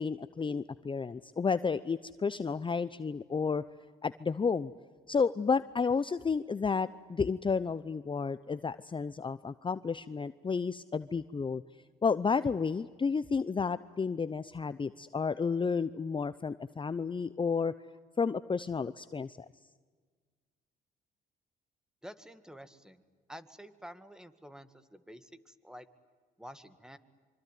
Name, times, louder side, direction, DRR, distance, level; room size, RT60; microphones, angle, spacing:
voice 1, 0.0-3.6 4.0-4.7 5.1-11.6 12.0-17.7 18.2-19.5, left 5 dB, 25° left, 14 dB, 0.7 m, -31 dB
voice 2, 22.0-23.0 23.3-25.9 26.4-27.0, equal, 5° right, 12 dB, 2.1 m, -49 dB
25.5 x 25.0 x 9.4 m, 1.5 s
supercardioid pair, 70°, 19 cm